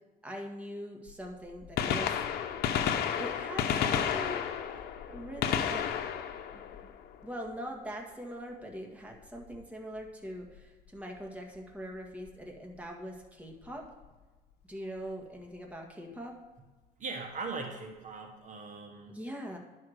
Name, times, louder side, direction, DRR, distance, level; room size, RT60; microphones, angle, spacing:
voice 1, 0.2-2.7 2.9-6.3 6.5-6.9 7.2-13.9 14.6-16.3 19.1-19.6, equal, 10° right, 0 dB, 1.7 m, -42 dB
Gunshot gunfire, 1.1-1.2 1.6-7.5 9.4-9.6 10.6-10.7 12.3-12.4 13.8-13.9 14.0-14.1, left 8 dB, 70° left, 0.8 m, -32 dB
voice 2, 17.0-19.1, right 4 dB, 45° right, 3 dB, 1.3 m, -40 dB
11.0 x 4.7 x 6.4 m, 1.2 s
cardioid pair, 110°, 17 cm